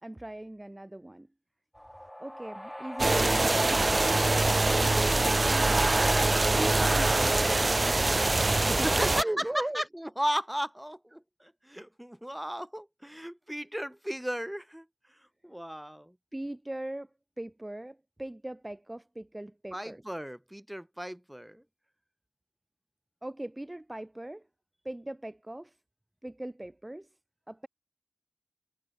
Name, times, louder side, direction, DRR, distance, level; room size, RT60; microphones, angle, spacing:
voice 1, 0.0-1.3 2.2-4.9 6.6-8.3 8.8-9.8 16.3-17.1 17.4-20.0 23.2-24.4 24.8-25.7 26.2-27.1 27.5-27.7, right 1 dB, 35° right, 0.9 m, -39 dB
sound 1, 1.7-7.0, equal, 10° left, 1.6 m, -44 dB
sound 2, 3.0-9.2, right 2 dB, 75° right, 0.3 m, -24 dB
voice 2, 8.5-16.2 19.7-21.6, equal, 10° right, 1.9 m, -35 dB
wide cardioid pair, 45°, 0 cm